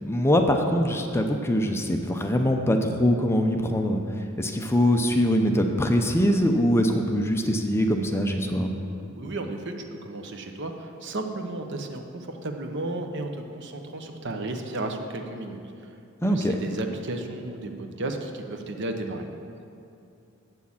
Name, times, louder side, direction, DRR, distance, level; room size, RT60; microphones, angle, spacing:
voice 1, 0.0-4.0 4.4-8.7 16.2-16.6, equal, 10° left, 4 dB, 0.5 m, -23 dB
voice 2, 9.1-9.7 10.0-19.2, right 2 dB, 60° right, 5 dB, 0.8 m, -34 dB
8.5 x 6.3 x 7.2 m, 2.6 s
head